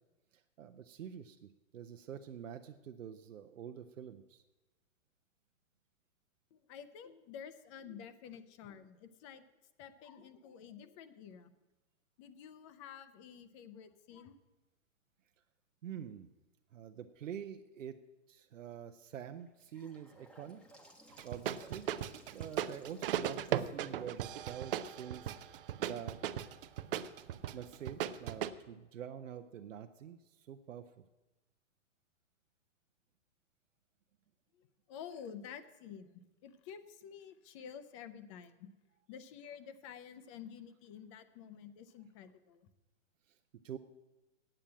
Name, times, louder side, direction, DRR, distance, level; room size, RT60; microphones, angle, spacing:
voice 1, 0.3-4.4 15.8-16.3 16.7-18.0 18.3-20.6 21.2-21.9 22.3-26.2 27.5-31.0 43.3-43.4 43.6-43.8, right 9 dB, 80° right, 7 dB, 0.7 m, -47 dB
voice 2, 6.5-9.4 9.8-11.5 12.2-14.4 34.6-38.7 39.1-42.7, left 8 dB, 25° left, 12 dB, 0.5 m, -50 dB
Gurgling / Sink (filling or washing) / Bathtub (filling or washing), 19.4-25.4, right 1 dB, 5° left, 0.9 m, -61 dB
sound 1, 21.2-28.5, right 10 dB, 45° right, 0.6 m, -37 dB
8.8 x 7.5 x 8.6 m, 1.1 s
hypercardioid pair, 135°, 38 cm